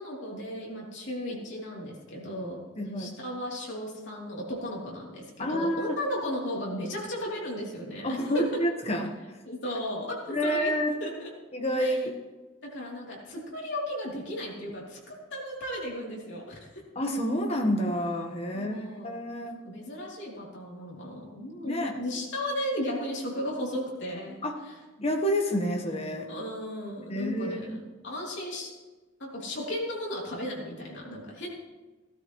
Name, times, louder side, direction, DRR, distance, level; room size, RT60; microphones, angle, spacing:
voice 1, 0.0-8.2 9.4-10.7 11.0-11.3 11.8-12.0 12.6-16.6 18.5-24.7 26.3-28.7 29.2-31.5, left 1 dB, 60° left, -3 dB, 3.2 m, -35 dB
voice 2, 2.8-3.2 5.4-6.0 8.0-9.1 10.3-10.9 11.5-12.1 16.9-19.6 21.6-22.0 24.4-24.6 25.0-26.3 27.1-27.8, equal, 30° left, 3 dB, 1.2 m, -29 dB
16.0 x 12.5 x 3.1 m, 1.2 s
head